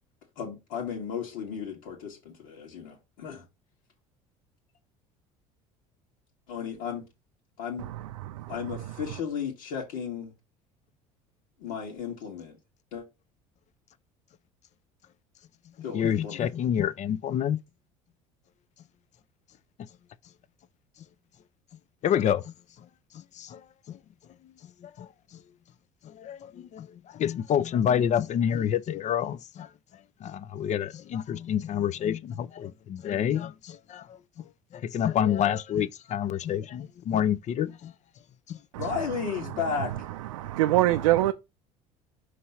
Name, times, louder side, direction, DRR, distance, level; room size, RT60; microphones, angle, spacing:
voice 1, 0.4-3.4 6.5-7.0 7.6-7.9 8.5-10.3 11.6-12.6 12.9-13.0 15.8-16.5 38.8-40.0, left 7 dB, 80° left, 1.8 m, -34 dB
voice 2, 7.8-9.2 38.7-41.3, right 15 dB, 85° right, 0.4 m, -28 dB
voice 3, 15.9-17.6 22.0-22.9 23.1-24.0 24.4-25.4 26.0-37.9 38.5-38.6, left 9 dB, 45° left, 0.6 m, -29 dB
5.3 x 3.2 x 5.6 m
hypercardioid pair, 75°, 17 cm